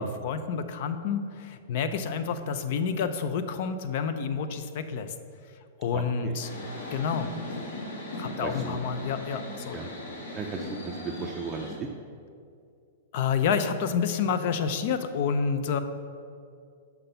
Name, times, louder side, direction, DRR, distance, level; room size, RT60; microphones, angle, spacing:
voice 1, 0.0-5.1 5.8-6.5 6.9-7.3 8.2-9.8 13.1-15.8, left 6 dB, 50° left, 10 dB, 0.5 m, -29 dB
voice 2, 5.9-6.4 8.4-8.8 9.7-9.9 10.3-11.9, right 5 dB, 15° right, 0 dB, 0.5 m, -36 dB
sound 1, 6.4-11.7, left 2 dB, 85° left, 1.9 m, -38 dB
5.8 x 5.7 x 6.7 m, 2.4 s
hypercardioid pair, 150°, 0 cm